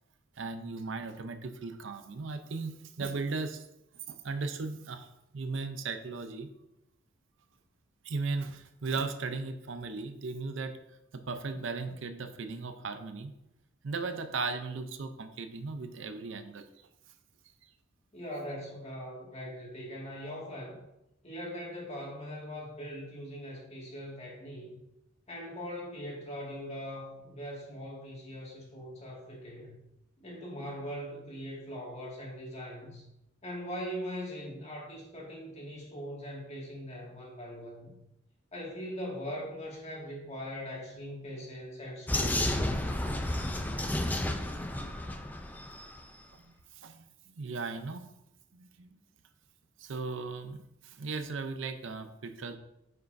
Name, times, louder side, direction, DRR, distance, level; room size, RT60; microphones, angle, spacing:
voice 1, 0.4-3.6 4.1-6.5 8.0-10.8 11.1-13.3 13.8-16.7 17.6-17.7 46.3-48.1 48.5-49.0 49.8-52.6, right 4 dB, 65° right, 8 dB, 0.6 m, -37 dB
voice 2, 18.1-20.8 21.2-24.8 25.3-29.7 30.2-33.0 33.4-37.9 38.5-42.9, equal, 35° left, -3 dB, 2.0 m, -41 dB
Vehicle, 42.1-46.0, left 1 dB, 10° left, 0.4 m, -32 dB
9.2 x 5.6 x 2.6 m, 0.88 s
head